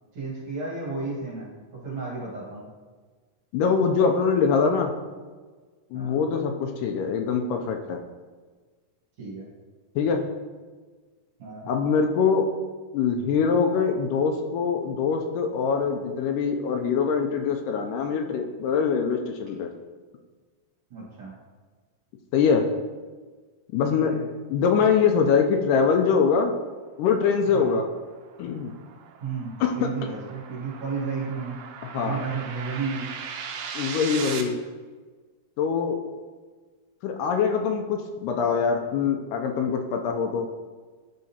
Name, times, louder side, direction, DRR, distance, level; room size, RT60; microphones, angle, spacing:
voice 1, 0.1-1.5 1.8-2.7 5.9-6.2 9.2-9.5 11.4-11.7 20.9-21.3 23.9-24.2 27.5-27.8 29.2-31.6 31.9-33.1, right 4 dB, 50° right, -6 dB, 2.2 m, -33 dB
voice 2, 3.5-4.9 5.9-8.0 10.0-10.2 11.7-12.5 12.9-19.7 22.3-22.7 23.7-24.2 24.5-26.6 27.0-27.9 28.4-28.7 29.6-29.9 31.9-32.2 33.7-34.6 35.6-36.0 37.0-40.5, left 6 dB, 80° left, 4 dB, 2.0 m, -23 dB
sound 1, 27.7-34.4, right 7 dB, 80° right, 2.1 m, -39 dB
10.5 x 3.8 x 2.8 m, 1.4 s
omnidirectional pair, 3.8 m